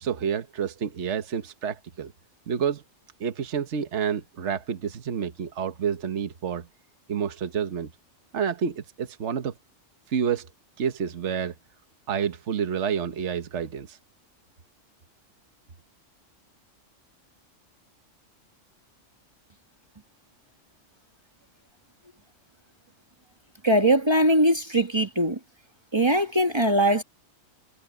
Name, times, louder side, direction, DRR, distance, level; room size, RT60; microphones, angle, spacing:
voice 1, 0.0-2.1 2.5-2.8 3.2-6.7 7.1-7.9 8.3-9.5 10.1-10.5 10.8-11.5 12.1-14.0, right 7 dB, 60° right, 1.4 m, -29 dB
voice 2, 23.6-25.4 25.9-27.0, right 1 dB, 20° right, 1.3 m, -21 dB
omnidirectional pair, 1.3 m